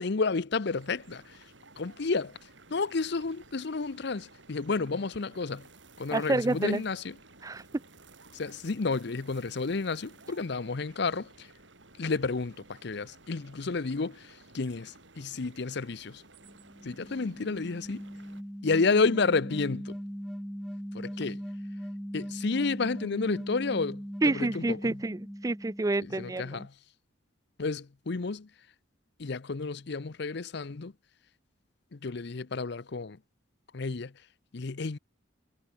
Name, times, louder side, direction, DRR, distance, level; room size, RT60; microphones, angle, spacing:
voice 1, 0.0-1.3 1.8-2.4 2.7-5.6 6.0-7.2 8.3-11.5 12.0-12.5 12.8-14.3 14.5-16.2 16.8-18.0 18.6-20.0 20.9-21.4 22.1-25.0 26.0-26.7 27.6-28.5 29.2-30.9 31.9-33.2 33.7-34.1 34.5-35.0, left 4 dB, 60° left, 0.7 m, -31 dB
sound 1, 0.7-18.4, right 3 dB, 70° right, 6.8 m, -55 dB
voice 2, 6.1-6.8 7.4-7.6 24.2-26.7, right 2 dB, 15° right, 0.4 m, -29 dB
sound 2, 16.4-26.6, equal, ahead, 2.7 m, -40 dB
head